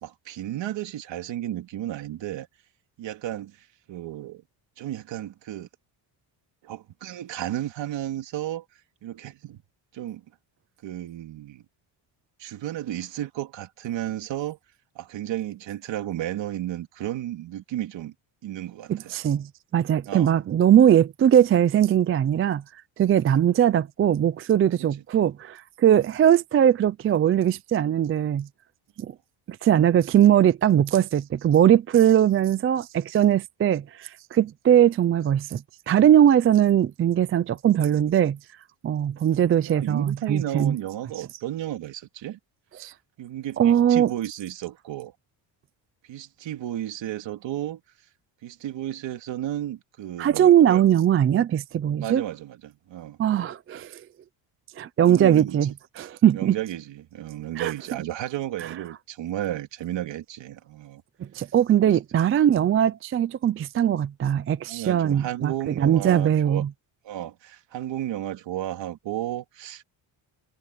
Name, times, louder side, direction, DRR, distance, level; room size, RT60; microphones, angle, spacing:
voice 1, 0.0-2.5 3.0-4.4 4.8-5.7 6.6-8.6 9.0-9.6 9.9-10.2 10.8-11.6 12.4-14.6 14.9-18.1 18.4-19.1 20.1-20.4 25.9-26.0 39.7-42.4 43.2-45.1 46.1-47.8 48.4-50.8 52.0-53.2 55.1-55.7 56.3-61.0 61.8-62.0 64.7-66.6 67.0-69.8, right 12 dB, 60° right, 3.0 m, -33 dB
voice 2, 18.9-19.5 19.7-22.6 23.0-28.5 29.0-29.1 29.5-38.4 38.8-40.8 41.2-41.3 42.8-42.9 43.6-44.1 50.2-52.2 53.2-54.0 54.8-55.7 56.0-56.6 57.6-57.7 61.3-66.7, right 10 dB, 30° right, 0.3 m, -20 dB
cardioid pair, 180°, 48 cm